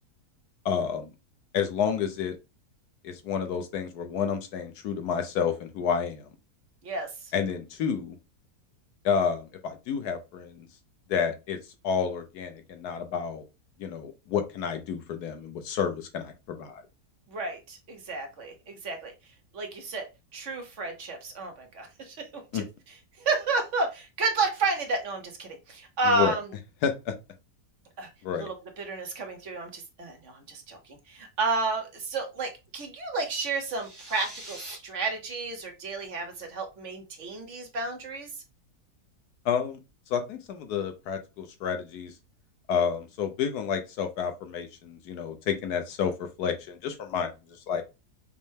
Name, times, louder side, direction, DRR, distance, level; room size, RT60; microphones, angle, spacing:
voice 1, 0.6-1.1 1.5-2.4 3.0-6.3 7.3-8.1 9.0-10.7 11.1-11.6 11.8-13.4 13.8-16.8 22.5-22.6 26.0-26.3 26.8-27.1 28.2-28.5 39.4-39.8 40.1-42.1 42.7-47.8, left 7 dB, 80° left, 1.3 m, -30 dB
voice 2, 6.8-7.3 17.3-19.1 19.5-22.3 22.5-22.6 23.2-26.5 28.0-28.1 28.4-38.3, right 3 dB, 55° right, 1.1 m, -31 dB
sound 1, 33.5-34.8, right 1 dB, 25° right, 0.6 m, -44 dB
5.3 x 2.1 x 3.2 m
omnidirectional pair, 1.7 m